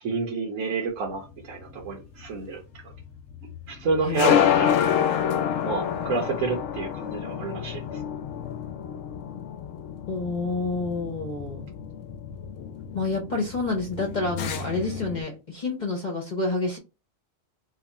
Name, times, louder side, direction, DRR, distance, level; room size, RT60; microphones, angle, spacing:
voice 1, 0.0-2.6 3.7-4.8 5.6-7.8, right 4 dB, 85° right, 1.1 m, -29 dB
sound 1, 1.2-15.2, left 9 dB, 85° left, 1.0 m, -29 dB
voice 2, 4.0-4.4 10.1-11.7 12.9-16.8, left 3 dB, 40° left, 0.8 m, -28 dB
2.9 x 2.3 x 4.0 m
omnidirectional pair, 1.3 m